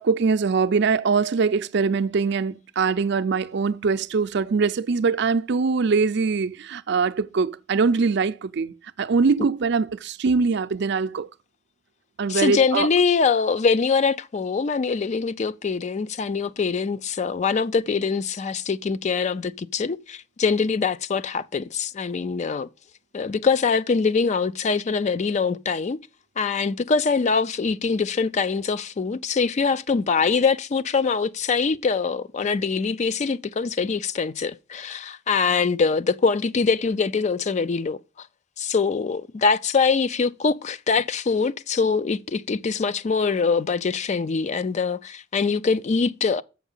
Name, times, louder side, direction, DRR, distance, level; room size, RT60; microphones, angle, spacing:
voice 1, 0.0-11.3 12.2-12.9, right 4 dB, 60° right, 0.5 m, -22 dB
voice 2, 12.3-22.7 23.1-26.0 26.4-38.3 38.6-46.4, left 5 dB, 35° left, 0.4 m, -23 dB
7.3 x 5.8 x 5.4 m
head